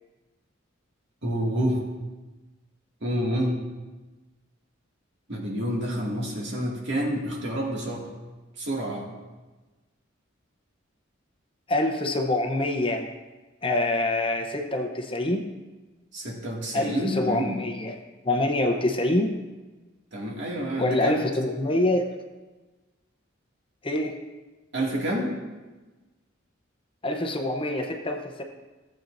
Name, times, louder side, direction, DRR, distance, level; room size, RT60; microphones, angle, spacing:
voice 1, 1.2-1.8 3.0-3.6 5.3-8.1 8.6-9.1 16.1-17.6 20.1-21.2 24.7-25.3, equal, 60° right, -3 dB, 2.1 m, -28 dB
voice 2, 11.7-13.1 13.6-15.4 16.7-17.9 18.2-19.4 20.8-22.1 23.8-24.1 27.0-28.4, left 1 dB, 25° left, 4 dB, 0.7 m, -25 dB
15.5 x 7.7 x 2.6 m, 1.2 s
head